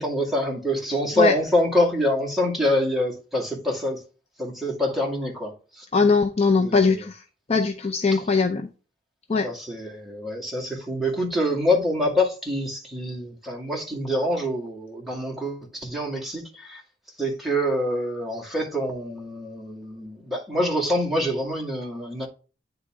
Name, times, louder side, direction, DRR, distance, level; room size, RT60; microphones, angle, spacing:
voice 1, 0.0-4.0 4.4-5.8 6.6-7.1 8.1-8.2 9.4-16.8 17.2-22.3, left 1 dB, ahead, 2.2 m, -26 dB
voice 2, 5.9-7.2 7.5-8.7 9.3-9.5, left 4 dB, 35° left, 0.5 m, -20 dB
9.6 x 4.0 x 3.6 m
head